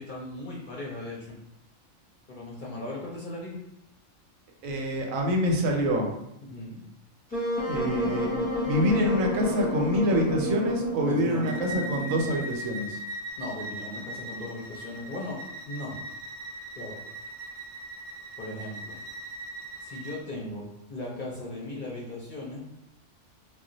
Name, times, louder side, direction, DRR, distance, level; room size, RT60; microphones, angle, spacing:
voice 1, 0.0-1.4 2.3-3.6 6.4-6.8 11.0-11.5 13.4-15.4 15.7-16.0 16.8-17.0 18.4-19.0 19.8-22.6, left 2 dB, 50° left, -5 dB, 0.6 m, -37 dB
voice 2, 4.6-6.1 7.7-8.3 8.6-13.0, equal, 85° right, 1 dB, 1.0 m, -26 dB
Wind instrument woodwind instrument, 7.3-12.4, equal, 10° left, 0.7 m, -30 dB
Bowed string instrument, 11.4-20.2, right 1 dB, 70° right, 0.4 m, -39 dB
2.3 x 2.1 x 3.8 m, 0.83 s
omnidirectional pair, 1.3 m